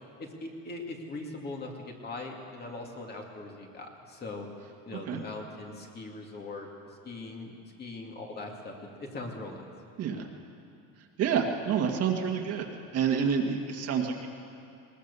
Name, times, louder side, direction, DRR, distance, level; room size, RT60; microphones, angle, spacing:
voice 1, 0.2-4.5 4.8-6.7 7.0-7.5 7.8-8.7 9.0-9.7, left 2 dB, 30° left, 1 dB, 2.5 m, -40 dB
voice 2, 11.2-12.7 12.9-14.3, right 7 dB, 45° right, 2 dB, 1.9 m, -28 dB
20.5 x 19.5 x 6.9 m, 2.6 s
cardioid pair, 150°, 34 cm